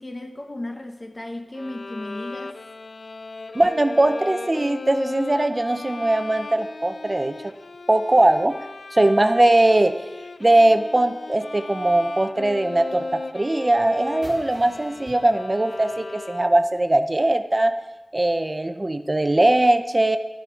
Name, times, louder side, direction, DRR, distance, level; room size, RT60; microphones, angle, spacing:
voice 1, 0.0-2.6, left 1 dB, 45° left, 1.0 m, -35 dB
Bowed string instrument, 1.5-16.8, left 3 dB, 90° left, 0.4 m, -37 dB
voice 2, 3.5-7.5 7.9-8.6 8.9-10.0 10.4-17.8 18.1-20.2, right 1 dB, 40° right, 0.6 m, -20 dB
sound 1, 14.2-16.9, equal, 10° left, 3.7 m, -46 dB
11.5 x 7.4 x 4.5 m
wide cardioid pair, 50°, 0 cm